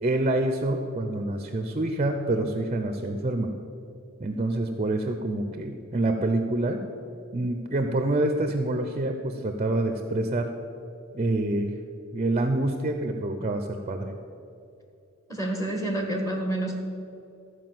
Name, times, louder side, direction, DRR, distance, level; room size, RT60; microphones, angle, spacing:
voice 1, 0.0-3.5 4.2-6.8 7.3-10.5 11.1-11.7 12.1-14.1, right 2 dB, 30° right, 5 dB, 0.6 m, -27 dB
voice 2, 15.3-16.8, right 1 dB, 15° left, 2 dB, 1.4 m, -28 dB
13.5 x 4.9 x 7.7 m, 2.7 s
head